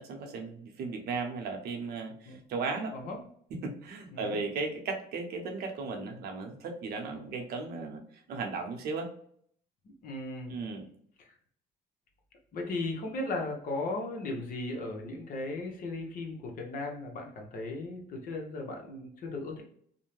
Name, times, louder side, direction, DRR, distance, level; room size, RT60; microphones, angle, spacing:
voice 1, 0.0-2.9 3.6-8.0 8.3-9.1 10.5-10.9, right 4 dB, 70° right, 4 dB, 0.7 m, -36 dB
voice 2, 10.0-10.6 11.2-11.3 12.5-19.6, left 2 dB, 55° left, 1 dB, 0.8 m, -36 dB
2.5 x 2.1 x 3.0 m, 0.63 s
cardioid pair, 110°, 17 cm